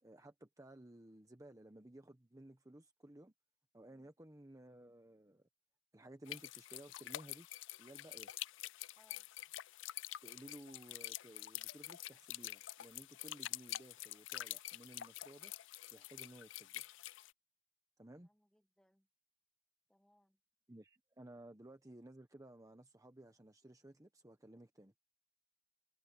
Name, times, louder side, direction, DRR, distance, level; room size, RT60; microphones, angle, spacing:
voice 1, 0.0-3.3 3.7-5.5 5.9-7.5 7.8-8.3 10.2-15.5 15.9-16.8 18.0-18.3 20.7-24.9, right 1 dB, 15° right, 1.0 m, -57 dB
sound 1, 6.3-17.3, left 15 dB, 75° left, 0.4 m, -47 dB
voice 2, 8.9-9.3 18.2-19.1 19.9-20.4, equal, 5° left, 1.8 m, -73 dB
head